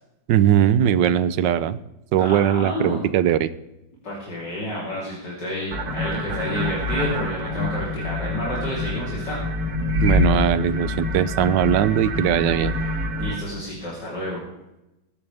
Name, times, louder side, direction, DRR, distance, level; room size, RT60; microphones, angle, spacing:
voice 1, 0.3-1.8 2.1-3.5 10.0-12.7, right 10 dB, 80° right, 15 dB, 1.4 m, -20 dB
voice 2, 2.2-3.0 4.0-9.4 13.2-14.4, left 1 dB, 70° left, -6 dB, 4.2 m, -30 dB
sound 1, 5.7-13.4, left 2 dB, 60° right, 2.4 m, -26 dB
21.0 x 12.0 x 3.5 m, 0.93 s
omnidirectional pair, 1.9 m